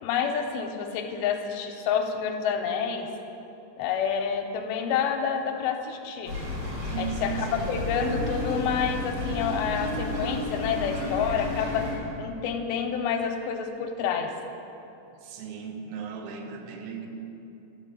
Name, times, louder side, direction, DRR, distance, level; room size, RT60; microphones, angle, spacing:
voice 1, 0.0-3.1 3.8-6.4 7.0-7.3 7.7-14.3, left 7 dB, 80° left, 4 dB, 2.5 m, -28 dB
sound 1, 6.2-11.9, left 1 dB, 55° right, 4.2 m, -32 dB
voice 2, 6.9-7.7 15.1-17.1, right 6 dB, 75° right, 4 dB, 2.6 m, -36 dB
12.0 x 5.2 x 7.2 m, 2.8 s
omnidirectional pair, 4.5 m